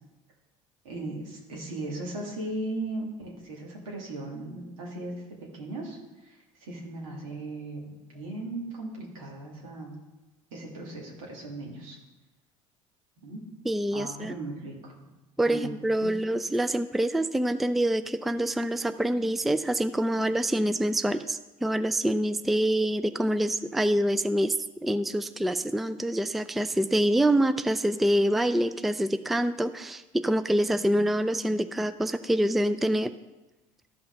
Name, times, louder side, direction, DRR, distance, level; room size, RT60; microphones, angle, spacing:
voice 1, 0.8-5.1 5.4-10.0 10.5-12.0 13.2-13.4 13.9-14.9 15.4-15.7 16.0-16.1, right 2 dB, 85° right, -2 dB, 2.3 m, -37 dB
voice 2, 13.7-14.3 15.4-33.1, right 1 dB, ahead, 12 dB, 0.4 m, -26 dB
13.0 x 5.6 x 3.9 m, 1.1 s
hypercardioid pair, 80°, 17 cm